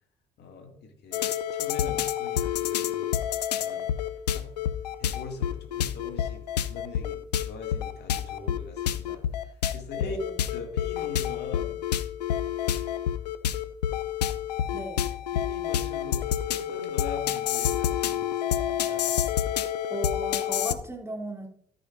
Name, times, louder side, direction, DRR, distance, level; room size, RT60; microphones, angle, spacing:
voice 1, 0.4-3.9 4.3-4.5 5.0-10.2 10.5-11.8 14.6-14.8 15.3-19.1, left 4 dB, 55° left, 3 dB, 2.4 m, -42 dB
sound 1, 1.1-20.7, left 10 dB, 90° left, 0.5 m, -28 dB
voice 2, 10.0-10.4 14.7-15.0 19.9-21.5, right 2 dB, 15° right, 1 dB, 3.2 m, -36 dB
13.5 x 9.9 x 2.6 m, 0.66 s
hypercardioid pair, 55°, 20 cm